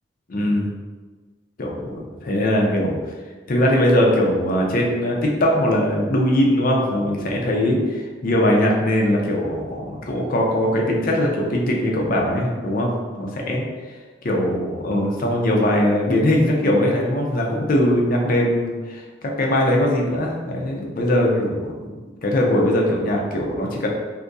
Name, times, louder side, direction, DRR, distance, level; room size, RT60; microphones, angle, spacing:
voice 1, 0.3-0.7 1.6-3.2 3.5-13.6 14.2-21.9 22.2-23.9, left 1 dB, 50° left, -1 dB, 0.6 m, -21 dB
2.7 x 2.6 x 3.5 m, 1.3 s
head